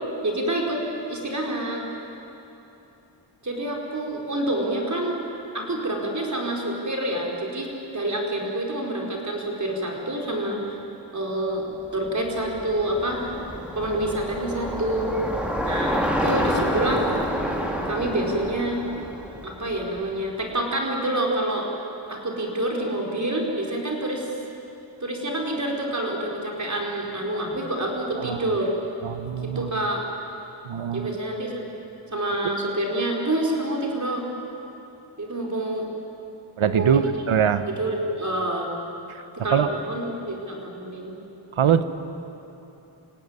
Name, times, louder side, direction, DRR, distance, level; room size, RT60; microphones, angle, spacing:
voice 1, 0.2-0.8 1.1-1.8 3.4-5.3 5.5-10.8 11.1-11.7 11.9-13.4 13.7-15.1 15.6-17.1 17.9-18.8 19.4-21.7 22.1-24.3 25.0-28.7 29.5-30.0 30.9-31.6 32.1-34.2 35.2-35.9 36.6-37.2 37.8-38.7 39.4-41.1, right 1 dB, 35° right, -1 dB, 4.8 m, -27 dB
Bicycle, 11.9-20.3, equal, ahead, 3.5 m, -28 dB
voice 2, 29.0-29.8 30.6-31.1 36.6-37.7 39.1-39.2 39.5-39.8 41.5-41.8, right 8 dB, 90° right, 11 dB, 1.2 m, -23 dB
28.5 x 16.5 x 9.8 m, 3.0 s
wide cardioid pair, 80°, 47 cm